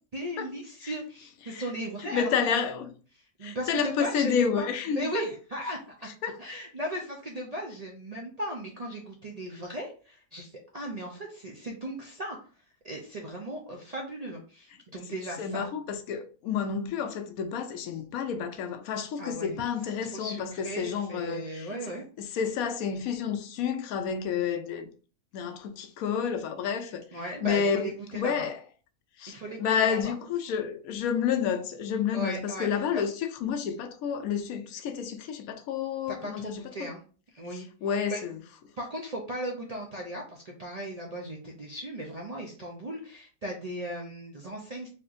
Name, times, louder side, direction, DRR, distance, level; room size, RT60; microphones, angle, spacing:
voice 1, 0.1-2.5 3.4-6.1 6.4-12.4 12.8-15.7 19.2-19.5 20.0-22.0 27.1-28.5 29.3-30.1 32.1-33.0 36.1-37.0 37.3-38.2 38.8-44.9, right 1 dB, 55° right, 0.4 m, -37 dB
voice 2, 2.0-2.9 3.4-5.2 6.2-6.4 15.4-21.7 22.2-24.9 25.3-27.0 27.4-28.6 29.2-36.9 37.5-38.4, left 7 dB, 75° left, 1.0 m, -30 dB
4.3 x 2.9 x 2.5 m
omnidirectional pair, 1.6 m